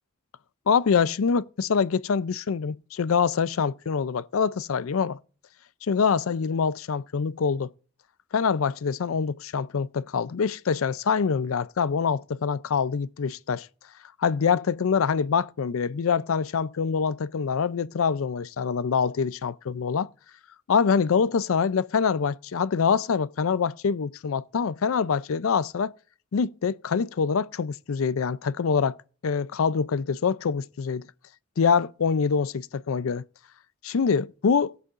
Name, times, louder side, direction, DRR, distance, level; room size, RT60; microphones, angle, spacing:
voice 1, 0.7-5.2 5.9-7.7 8.3-13.7 14.2-20.1 20.7-25.9 26.3-29.0 29.2-31.1 31.6-33.2 33.8-34.7, left 6 dB, 85° left, 0.5 m, -25 dB
18.5 x 8.2 x 2.5 m
head